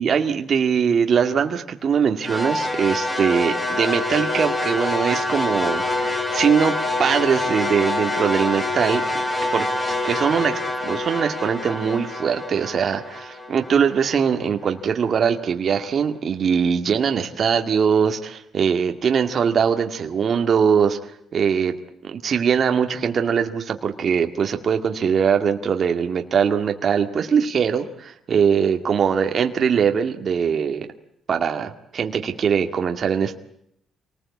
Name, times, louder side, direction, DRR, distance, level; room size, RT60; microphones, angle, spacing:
voice 1, 0.0-6.7 7.0-9.0 9.5-21.7 22.0-30.9 31.3-33.3, right 7 dB, 45° right, 5 dB, 2.1 m, -21 dB
sound 1, 2.2-14.5, left 2 dB, 20° left, 4.7 m, -26 dB
28.0 x 19.5 x 8.5 m, 0.76 s
cardioid pair, 130°, 0 cm